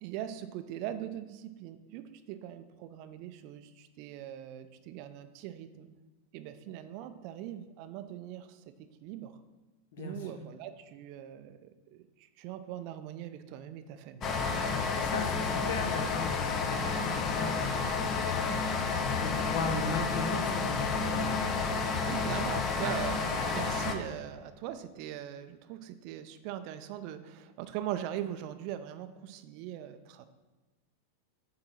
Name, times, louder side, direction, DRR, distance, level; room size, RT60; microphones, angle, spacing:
voice 1, 0.0-5.9 6.3-9.3 10.0-14.5 22.1-30.3, right 11 dB, 45° right, 10 dB, 0.5 m, -41 dB
voice 2, 9.9-10.3 15.0-17.9 18.9-21.3, left 4 dB, 55° left, 4 dB, 1.2 m, -37 dB
sound 1, 14.2-23.9, left 4 dB, 30° left, 0.7 m, -30 dB
8.9 x 3.8 x 5.8 m, 1.2 s
figure-of-eight pair, 90°, 0 cm